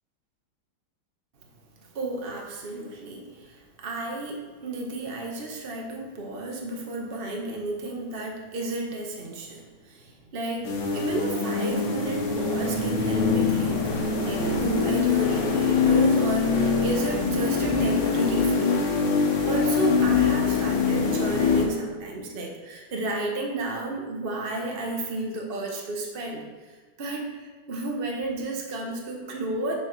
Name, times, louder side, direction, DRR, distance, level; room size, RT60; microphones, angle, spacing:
voice 1, 1.9-18.9 19.5-26.7 27.0-29.8, right 2 dB, 40° right, 0 dB, 0.9 m, -32 dB
sound 1, 10.7-21.6, left 5 dB, 75° left, 1.9 m, -23 dB
6.8 x 5.8 x 4.5 m, 1.4 s
omnidirectional pair, 2.2 m